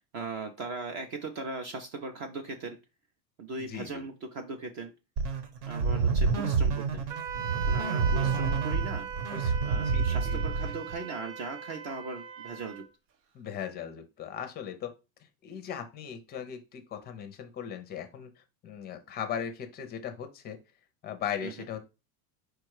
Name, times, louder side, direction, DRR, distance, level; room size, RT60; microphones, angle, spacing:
voice 1, 0.0-2.8 3.4-4.9 5.7-7.0 7.7-9.1 9.6-12.8 21.4-21.5, right 3 dB, 35° right, 5 dB, 0.5 m, -39 dB
voice 2, 3.7-4.0 6.6-6.7 7.8-8.5 9.3-10.7 13.3-14.9 15.4-18.3 18.6-20.6 21.0-21.8, left 8 dB, 20° left, 7 dB, 0.4 m, -39 dB
sound 1, 5.2-11.0, right 5 dB, 65° right, 1.1 m, -28 dB
Wind instrument woodwind instrument, 7.1-12.9, right 9 dB, 90° right, 0.9 m, -39 dB
4.5 x 2.3 x 4.6 m, 0.29 s
supercardioid pair, 145°, 49 cm